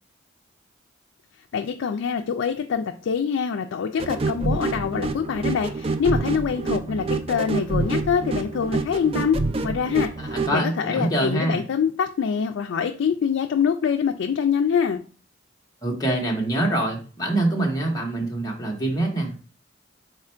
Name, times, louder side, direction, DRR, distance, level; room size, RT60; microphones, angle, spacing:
voice 1, 1.5-10.1 10.5-15.0, left 7 dB, 80° left, 5 dB, 0.3 m, -25 dB
sound 1, 4.0-10.6, right 3 dB, 30° right, 0.3 m, -27 dB
voice 2, 10.3-11.6 15.8-19.4, right 1 dB, 20° left, -1 dB, 0.9 m, -25 dB
4.3 x 2.4 x 4.3 m, 0.38 s
head